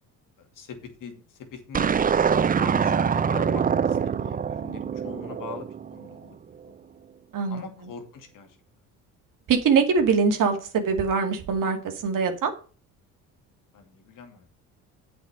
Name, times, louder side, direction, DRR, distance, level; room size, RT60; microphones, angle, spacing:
voice 1, 0.6-1.1 1.5-2.1 2.6-3.6 3.9-6.4 7.5-8.5 13.7-14.5, left 5 dB, 60° left, 6 dB, 2.5 m, -42 dB
sound 1, 1.7-6.1, right 7 dB, 25° right, 0.5 m, -24 dB
voice 2, 7.3-7.9 9.5-11.8 12.0-12.5, right 5 dB, 60° right, 4 dB, 2.3 m, -23 dB
8.3 x 5.9 x 5.6 m, 0.38 s
supercardioid pair, 75°, 37 cm